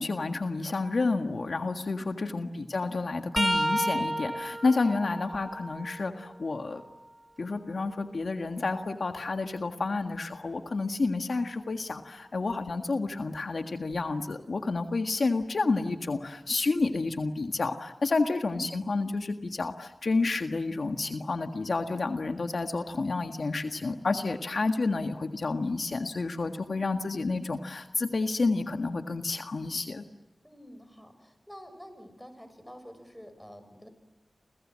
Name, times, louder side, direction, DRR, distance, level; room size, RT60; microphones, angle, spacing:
voice 1, 0.0-6.8 7.4-30.0, left 3 dB, 65° left, 6 dB, 1.7 m, -30 dB
voice 2, 2.2-2.6 18.2-18.7 30.4-33.9, equal, 5° left, 9 dB, 6.7 m, -49 dB
sound 1, 3.4-7.1 7.6-9.6 12.5-12.7 13.9-14.1 15.4-15.5, right 1 dB, 10° right, 0.9 m, -34 dB
29.5 x 26.5 x 7.6 m, 0.99 s
cardioid pair, 55°, 0 cm